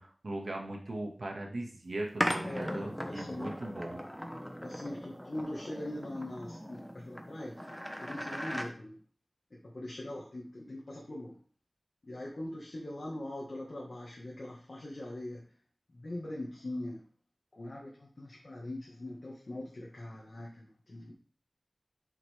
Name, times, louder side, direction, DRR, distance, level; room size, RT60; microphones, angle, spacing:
voice 1, 0.0-4.0, right 1 dB, 75° right, 0 dB, 1.7 m, -39 dB
sound 1, 2.2-8.7, equal, 5° left, 1.1 m, -38 dB
voice 2, 2.4-4.0 4.6-7.7 8.0-9.0 9.5-11.4 12.0-15.4 15.9-17.0 17.5-21.1, left 1 dB, 65° left, -4 dB, 1.6 m, -42 dB
7.2 x 5.8 x 3.5 m, 0.42 s
wide cardioid pair, 65°, 0 cm